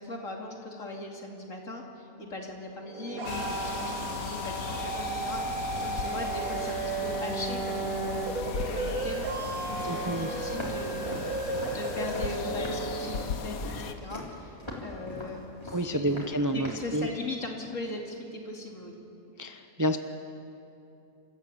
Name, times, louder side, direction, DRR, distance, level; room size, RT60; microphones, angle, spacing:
voice 1, 0.0-18.9, left 2 dB, 65° left, 1 dB, 2.9 m, -39 dB
sound 1, 2.8-13.2, right 3 dB, 90° right, 2.3 m, -34 dB
sound 2, 3.2-13.9, left 5 dB, 85° left, 1.6 m, -37 dB
voice 2, 9.9-10.3 15.7-17.1 19.4-20.0, right 1 dB, 20° right, 8 dB, 0.6 m, -29 dB
Walk footsteps, 10.5-16.9, left 1 dB, 20° left, 3.9 m, -41 dB
29.0 x 14.0 x 8.6 m, 2.8 s
omnidirectional pair, 1.4 m